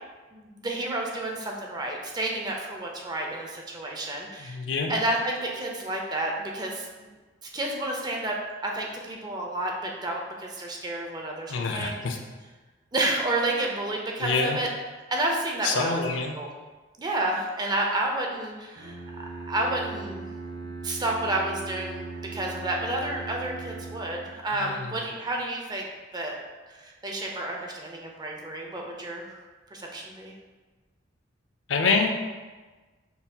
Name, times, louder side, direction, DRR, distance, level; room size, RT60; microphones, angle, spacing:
voice 1, 0.3-4.6 4.9-7.1 7.5-8.4 8.6-11.9 12.9-14.7 15.1-16.0 16.3-16.5 17.0-19.0 19.5-20.3 20.5-25.9 26.1-26.3 26.7-29.4 29.7-30.3, right 1 dB, 20° right, 0 dB, 0.5 m, -30 dB
voice 2, 4.4-4.9 11.5-12.2 14.2-14.6 15.6-16.3 24.5-24.9 31.7-32.1, left 4 dB, 70° left, 2 dB, 0.4 m, -26 dB
Bowed string instrument, 18.8-24.6, right 3 dB, 90° right, 0.5 m, -39 dB
5.4 x 2.7 x 2.3 m, 1.3 s
head